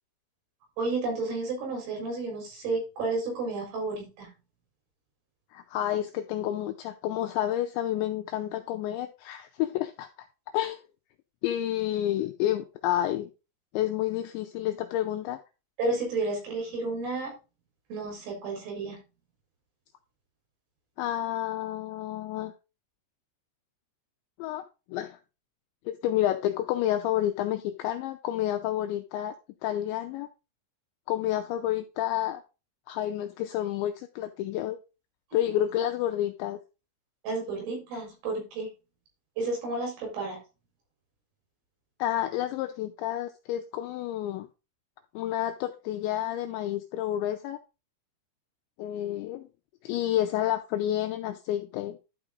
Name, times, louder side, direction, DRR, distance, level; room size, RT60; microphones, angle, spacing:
voice 1, 0.8-4.3 15.8-17.3 17.9-19.0 37.2-38.7 39.4-40.4, right 3 dB, 75° right, 0 dB, 6.9 m, -31 dB
voice 2, 5.5-10.1 10.5-10.8 11.4-13.3 13.7-15.4 21.0-22.5 24.4-25.2 25.9-29.4 29.6-30.3 31.1-32.4 32.9-34.8 35.3-36.6 42.0-44.5 45.1-47.6 48.8-49.5 49.8-52.0, left 12 dB, 85° left, 6 dB, 2.6 m, -29 dB
12.0 x 4.9 x 3.7 m, 0.30 s
omnidirectional pair, 5.9 m